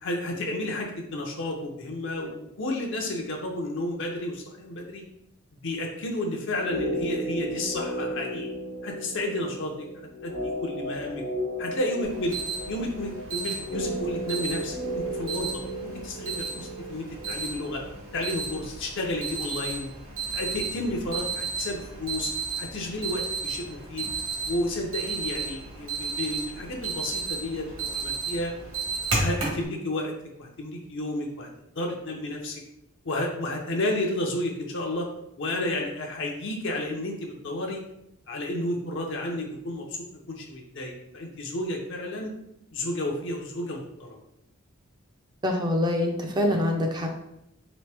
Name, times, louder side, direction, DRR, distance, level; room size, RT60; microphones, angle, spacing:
voice 1, 0.0-5.0 5.6-8.5 8.8-9.9 10.2-11.2 11.6-12.4 12.7-17.8 18.1-19.9 20.3-22.3 22.6-24.1 24.5-28.5 29.1-31.5 31.7-32.6 33.0-35.1 35.4-37.8 38.3-39.9 40.3-42.3 42.7-44.2, left 1 dB, 60° left, 0 dB, 0.7 m, -31 dB
sound 1, 6.6-18.7 19.0-19.1, equal, 80° left, 1.0 m, -34 dB
Alarm, 12.0-29.6, right 4 dB, 65° right, 1.3 m, -34 dB
voice 2, 45.4-47.1, left 1 dB, 20° right, 2 dB, 0.5 m, -25 dB
3.2 x 3.1 x 3.4 m, 0.80 s
head